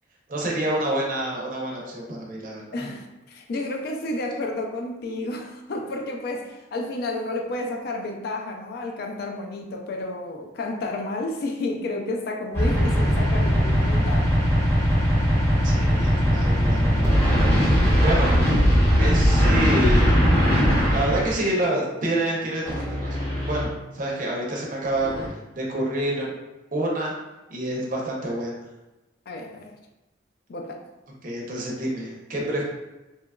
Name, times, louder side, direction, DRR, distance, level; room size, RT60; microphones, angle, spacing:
voice 1, 0.3-2.9 15.6-17.5 18.0-18.4 19.0-20.1 20.9-25.2 25.6-26.4 26.7-27.1 27.5-28.5 31.2-32.6, right 1 dB, 45° right, -3 dB, 0.6 m, -28 dB
voice 2, 2.7-14.3 29.3-29.8 30.5-30.8, left 2 dB, 55° left, 2 dB, 0.4 m, -31 dB
sound 1, 12.5-21.3 22.7-23.7 24.9-25.3, equal, 10° left, 0.6 m, -20 dB
2.8 x 2.3 x 2.2 m, 1.0 s
head